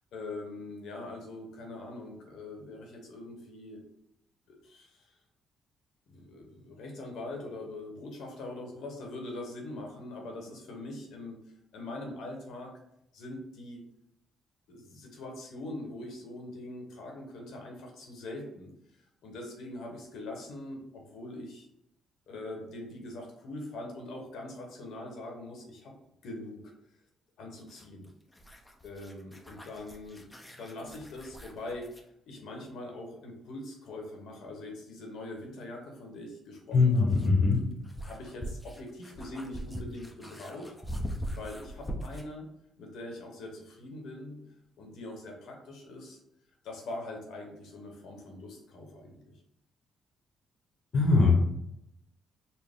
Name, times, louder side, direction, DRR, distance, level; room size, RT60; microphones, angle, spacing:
voice 1, 0.1-3.8 4.5-5.2 6.1-11.4 11.7-12.7 13.1-13.8 14.7-18.7 19.2-21.7 22.3-25.9 26.2-26.7 27.4-28.1 28.8-30.2 30.6-31.9 32.3-37.4 38.0-40.7 41.3-42.4 42.8-44.4 44.8-46.2 46.6-49.2, left 2 dB, 80° left, 1 dB, 1.0 m, -42 dB
sound 1, 27.6-32.1 34.5-34.6 36.5-42.4, equal, 10° left, 0.6 m, -42 dB
voice 2, 36.7-37.7 50.9-51.3, left 3 dB, 50° left, -1 dB, 0.9 m, -22 dB
4.3 x 2.1 x 3.6 m, 0.78 s
cardioid pair, 90°, 0 cm